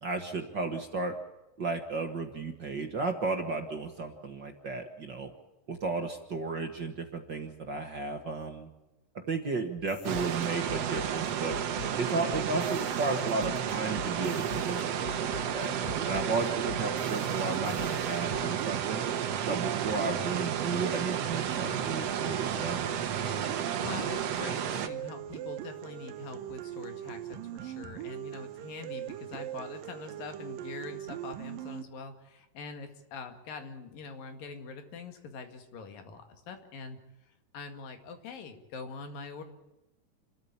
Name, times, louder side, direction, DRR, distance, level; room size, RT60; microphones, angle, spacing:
voice 1, 0.0-1.1 1.6-5.3 5.7-8.7 9.1-11.5 12.0-15.7 16.0-19.0 19.5-22.8, right 3 dB, 40° right, 5 dB, 1.8 m, -34 dB
sound 1, 9.8-18.4, left 4 dB, 55° left, 2.6 m, -44 dB
sound 2, 10.0-24.9, right 9 dB, 60° right, 2.0 m, -32 dB
sound 3, 15.8-31.8, right 11 dB, 90° right, 2.7 m, -41 dB
voice 2, 23.8-37.0 37.3-39.4, left 4 dB, 85° left, 7 dB, 3.8 m, -44 dB
28.0 x 13.5 x 8.4 m, 0.99 s
omnidirectional pair, 3.9 m